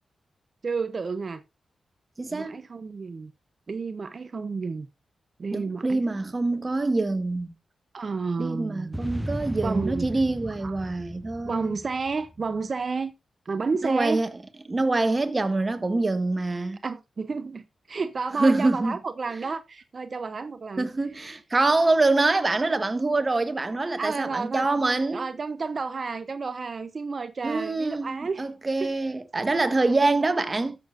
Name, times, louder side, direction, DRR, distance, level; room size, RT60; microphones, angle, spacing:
voice 1, 0.6-1.4 2.3-3.3 3.7-4.9 5.4-6.3 7.9-9.0 9.6-10.1 10.6-10.9 11.4-13.1 13.5-14.2 16.8-20.9 24.0-28.5 28.8-28.9, right 4 dB, 55° right, 0.6 m, -31 dB
voice 2, 2.2-2.6 5.5-7.5 8.4-11.7 13.8-14.3 14.7-16.8 18.4-19.0 20.8-25.2 27.4-30.8, right 2 dB, 35° right, 1.4 m, -25 dB
sound 1, 8.9-12.4, equal, ahead, 0.7 m, -35 dB
13.5 x 6.8 x 2.5 m
supercardioid pair, 45°, 0 cm